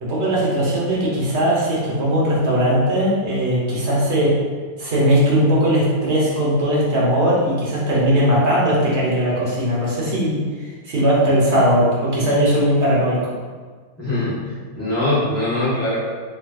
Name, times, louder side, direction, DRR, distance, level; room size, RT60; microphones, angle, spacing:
voice 1, 0.0-4.4 4.8-13.2, equal, 45° right, -6 dB, 1.2 m, -19 dB
voice 2, 14.0-16.0, left 1 dB, 10° left, -10 dB, 1.0 m, -22 dB
4.7 x 3.1 x 2.4 m, 1.5 s
omnidirectional pair, 2.1 m